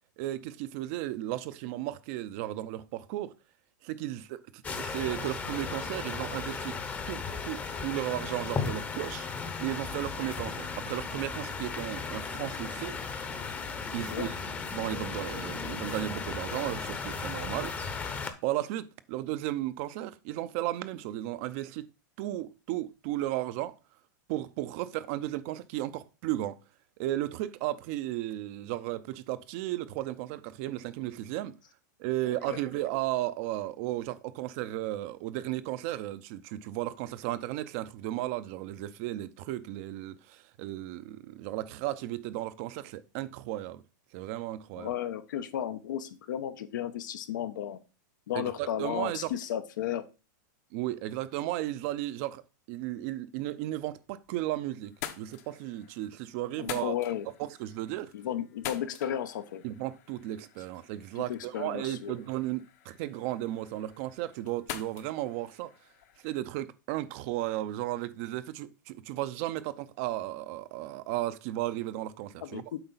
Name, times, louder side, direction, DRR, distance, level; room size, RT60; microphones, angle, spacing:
voice 1, 0.2-3.3 3.8-6.8 7.0-9.3 9.6-13.0 13.9-14.3 14.7-21.9 22.2-23.8 24.3-26.6 27.0-31.6 32.0-43.8 44.1-44.9 48.3-49.3 50.7-52.4 52.7-56.9 57.4-58.1 59.6-65.7 66.2-72.6, right 15 dB, 45° right, 0.6 m, -35 dB
sound 1, 4.6-18.3, left 5 dB, 15° left, 0.8 m, -36 dB
voice 2, 32.2-32.6 44.8-47.8 48.3-50.0 56.6-57.3 58.1-59.6 61.2-62.2 72.4-72.8, left 10 dB, 80° left, 0.9 m, -34 dB
sound 2, 53.9-54.5 54.8-66.4, left 11 dB, 55° left, 1.0 m, -46 dB
7.9 x 4.8 x 4.0 m
supercardioid pair, 150°, 10 cm